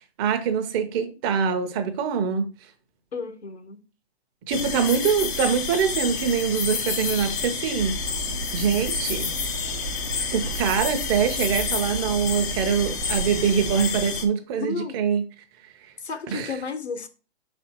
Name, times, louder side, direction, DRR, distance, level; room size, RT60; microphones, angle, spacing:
voice 1, 0.2-2.5 4.5-7.9 8.5-9.3 10.3-15.2 16.3-16.5, right 7 dB, 20° right, 0.7 m, -24 dB
voice 2, 3.1-3.8 14.6-15.0 16.0-17.1, left 5 dB, 85° left, 1.2 m, -32 dB
sound 1, 4.5-14.2, left 5 dB, 20° left, 0.4 m, -29 dB
Hammer, 7.8-13.9, right 6 dB, 55° right, 0.8 m, -36 dB
5.4 x 4.3 x 4.4 m
hypercardioid pair, 145°, 32 cm